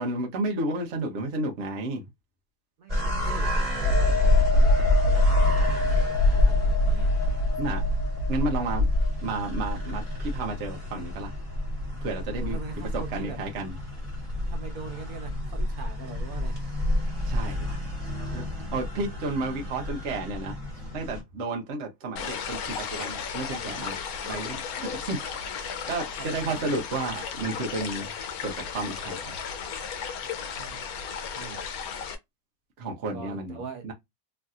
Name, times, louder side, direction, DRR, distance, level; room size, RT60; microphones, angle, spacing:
voice 1, 0.0-2.1 7.6-7.8 8.3-8.8 9.2-11.4 12.0-12.6 12.9-13.7 17.2-17.8 18.3-18.4 18.7-20.6 20.9-24.0 24.2-25.2 25.5-28.1 28.4-29.4 32.8-33.9, right 2 dB, 60° right, 1.0 m, -32 dB
voice 2, 2.8-7.1 12.4-13.4 14.4-16.6 19.1-20.1 26.2-26.8 27.7-27.9 30.6-31.0 31.3-31.6 33.1-33.8, right 6 dB, 80° right, 1.4 m, -42 dB
sound 1, 2.9-21.2, left 1 dB, 25° right, 1.7 m, -29 dB
sound 2, 3.8-11.2 11.6-11.8, left 1 dB, 70° left, 0.9 m, -24 dB
sound 3, 22.2-32.2, left 7 dB, 85° left, 1.1 m, -35 dB
3.2 x 2.6 x 2.3 m
omnidirectional pair, 1.5 m